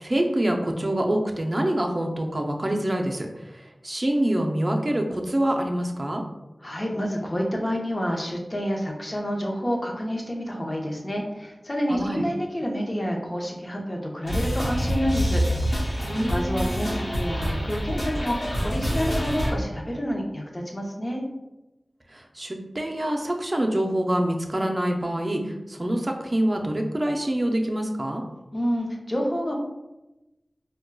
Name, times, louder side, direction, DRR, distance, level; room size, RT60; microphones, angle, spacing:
voice 1, 0.0-3.3 3.5-6.2 11.9-12.2 16.0-16.7 22.1-28.2, right 1 dB, 40° right, 2 dB, 0.5 m, -26 dB
voice 2, 6.6-15.8 16.3-21.2 28.5-29.6, equal, 35° left, -1 dB, 0.7 m, -28 dB
sound 1, 14.3-19.5, equal, 70° left, 0.9 m, -26 dB
4.4 x 2.2 x 2.2 m, 0.99 s
wide cardioid pair, 55°, 0 cm